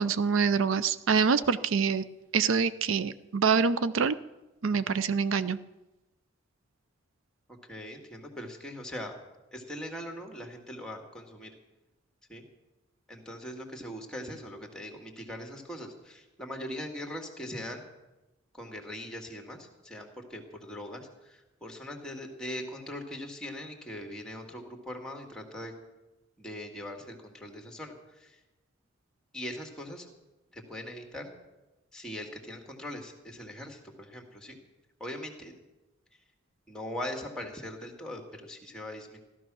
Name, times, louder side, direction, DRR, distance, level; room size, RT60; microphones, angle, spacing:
voice 1, 0.0-2.0 2.3-4.1 4.6-5.6, right 5 dB, 75° right, 15 dB, 0.5 m, -25 dB
voice 2, 7.5-9.1 9.5-11.5 12.3-12.4 13.1-17.8 18.5-25.7 26.4-28.4 29.3-30.1 30.5-31.3 31.9-34.6 35.0-35.5 36.7-39.2, left 1 dB, 5° left, 3 dB, 2.0 m, -41 dB
15.0 x 13.0 x 6.2 m, 1.0 s
head